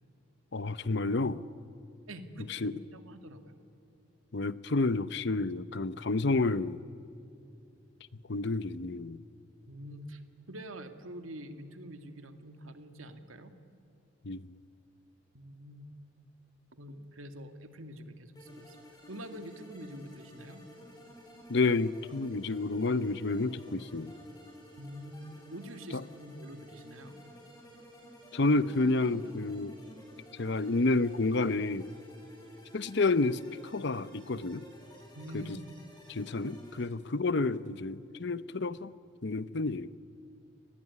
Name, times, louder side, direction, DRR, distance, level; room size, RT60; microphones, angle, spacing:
voice 1, 0.5-1.4 2.5-2.7 4.3-6.8 8.3-9.2 14.2-14.5 21.5-24.1 25.9-26.0 28.3-29.8 30.4-31.9 32.7-33.4 33.7-34.6 35.3-35.4 36.1-38.9 39.2-39.9, left 3 dB, 55° left, 16 dB, 0.8 m, -30 dB
voice 2, 2.1-3.5 9.7-10.2 10.5-13.5 15.3-15.9 16.8-18.8 19.1-20.6 24.8-27.2 35.1-35.7, right 1 dB, 85° right, 7 dB, 2.1 m, -45 dB
sound 1, 18.3-36.8, equal, 20° left, 7.8 m, -53 dB
29.5 x 20.5 x 9.8 m, 2.6 s
head